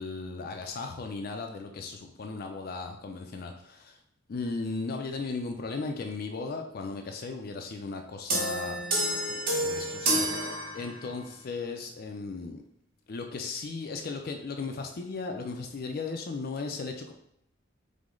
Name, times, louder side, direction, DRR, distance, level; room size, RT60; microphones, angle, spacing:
voice 1, 0.0-4.0 4.3-8.8 9.1-12.6 13.1-17.1, left 3 dB, 50° left, 4 dB, 0.4 m, -36 dB
sound 1, 8.3-11.3, right 1 dB, 50° right, 1.0 m, -29 dB
4.9 x 2.1 x 3.7 m, 0.73 s
head